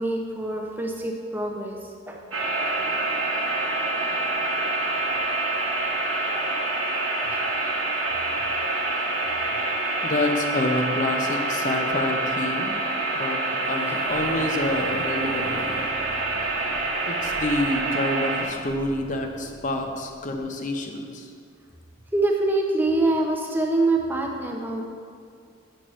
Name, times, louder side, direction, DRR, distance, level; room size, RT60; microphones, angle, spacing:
voice 1, 0.0-2.2 6.4-6.5 7.3-7.4 8.5-8.6 22.1-24.9, right 2 dB, 10° right, 0 dB, 0.6 m, -25 dB
sound 1, 2.3-18.4, right 2 dB, 80° right, 0.9 m, -26 dB
voice 2, 10.0-12.8 13.1-13.4 13.7-15.8 17.1-21.3, left 1 dB, 35° left, 4 dB, 0.5 m, -27 dB
sound 2, 13.6-20.4, left 1 dB, 65° left, 1.2 m, -42 dB
7.7 x 6.2 x 3.1 m, 2.2 s
head